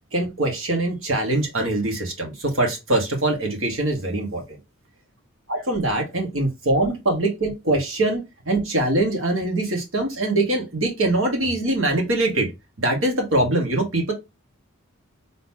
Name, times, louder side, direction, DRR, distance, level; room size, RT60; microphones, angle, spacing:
voice 1, 0.1-4.6 5.5-12.5 12.8-14.1, right 2 dB, 70° right, 1.9 m, -23 dB
3.8 x 3.8 x 2.9 m
head